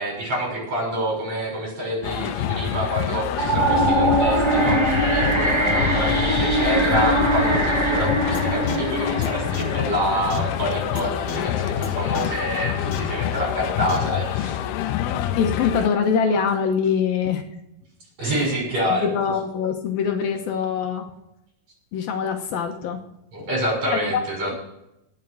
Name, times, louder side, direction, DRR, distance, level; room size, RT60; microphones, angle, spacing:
voice 1, 0.0-14.6 18.2-19.1 23.3-24.6, equal, 40° right, -2 dB, 7.6 m, -27 dB
sound 1, 2.0-15.9, left 11 dB, 90° left, 2.7 m, -26 dB
sound 2, 3.3-10.4, right 1 dB, 25° right, 0.6 m, -22 dB
sound 3, 8.3-8.4 8.7-8.8 9.2-9.3 9.5-9.6 10.3-10.4 11.0-11.1 11.3-11.4 11.8-11.9 12.1-12.2 12.9-13.0 13.9-14.0, left 5 dB, 55° left, 2.6 m, -32 dB
voice 2, 15.4-17.4 18.2-18.6 18.9-21.1 21.9-23.0 23.9-24.2, left 6 dB, 75° left, 4 dB, 2.7 m, -24 dB
18.5 x 7.3 x 6.4 m, 0.85 s
omnidirectional pair, 4.5 m